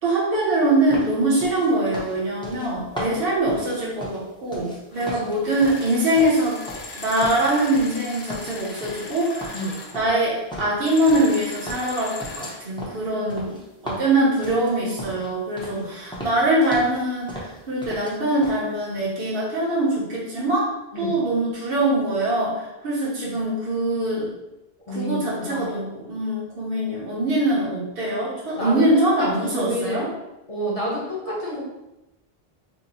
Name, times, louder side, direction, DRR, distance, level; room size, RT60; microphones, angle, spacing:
voice 1, 0.0-6.6 6.9-9.6 9.9-13.6 13.8-20.7 21.0-24.3 24.9-30.1, right 1 dB, 65° right, -6 dB, 1.0 m, -23 dB
sound 1, 0.9-4.8 5.0-7.0 7.2-8.0 8.3-9.1 9.4-11.4 11.7-15.3 15.6-15.8 16.1-17.0 17.3-18.1 18.4-18.6, equal, 5° left, 0.5 m, -37 dB
sound 2, 4.9-5.1 5.4-10.0 10.8-12.6, left 3 dB, 80° left, 0.8 m, -38 dB
voice 2, 15.6-16.0 20.9-21.2 23.2-23.4 24.9-25.7 28.6-30.1 30.5-31.6, equal, 35° left, -6 dB, 1.0 m, -30 dB
2.8 x 2.0 x 3.9 m, 0.95 s
omnidirectional pair, 1.0 m